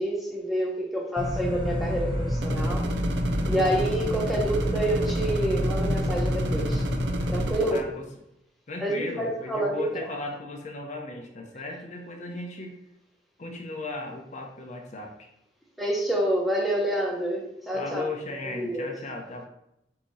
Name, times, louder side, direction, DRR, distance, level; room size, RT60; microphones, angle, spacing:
voice 1, 0.0-2.9 3.4-6.8 7.3-7.8 8.8-9.9 15.8-18.1 18.5-18.9, right 1 dB, ahead, -2 dB, 0.8 m, -28 dB
sound 1, 1.2-7.5, equal, 25° right, 0.9 m, -28 dB
sound 2, 2.4-7.8, right 2 dB, 70° right, 0.5 m, -35 dB
voice 2, 7.7-8.0 8.7-12.8 13.4-15.3 17.7-19.5, left 2 dB, 40° left, 2 dB, 0.6 m, -36 dB
4.7 x 2.8 x 4.0 m, 0.82 s
head